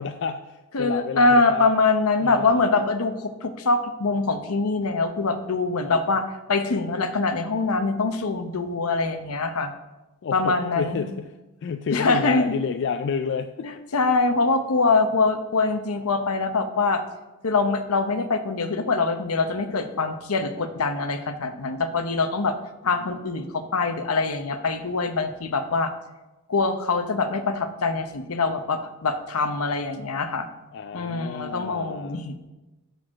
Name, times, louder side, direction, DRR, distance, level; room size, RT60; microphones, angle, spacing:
voice 1, 0.0-1.6 2.2-2.6 5.8-6.0 10.2-11.3 11.6-13.7 23.0-23.2 30.7-32.3, left 6 dB, 55° left, 8 dB, 0.4 m, -30 dB
voice 2, 0.7-9.7 10.3-11.0 11.9-12.4 13.6-17.0 17.4-22.6 22.8-25.9 26.5-30.5 30.9-32.3, left 3 dB, 80° left, 9 dB, 0.8 m, -24 dB
6.7 x 6.3 x 6.2 m, 1.1 s
head